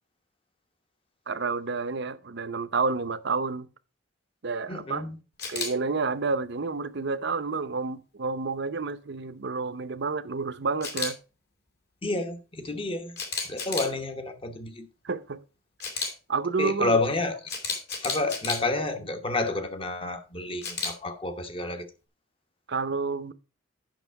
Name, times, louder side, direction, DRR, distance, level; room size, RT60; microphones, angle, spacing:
voice 1, 1.3-3.7 4.4-5.0 5.5-11.2 15.0-15.4 16.3-17.0 22.7-23.3, right 4 dB, 55° right, 0.7 m, -29 dB
voice 2, 4.7-5.2 12.0-13.2 13.4-14.9 16.6-17.5 18.0-21.9, left 2 dB, 25° left, 1.0 m, -30 dB
Camera, 5.4-5.7 10.8-11.1 13.2-13.9 15.8-16.1 17.5-18.6 20.6-20.9, left 4 dB, 55° left, 2.4 m, -31 dB
9.1 x 6.0 x 4.7 m
head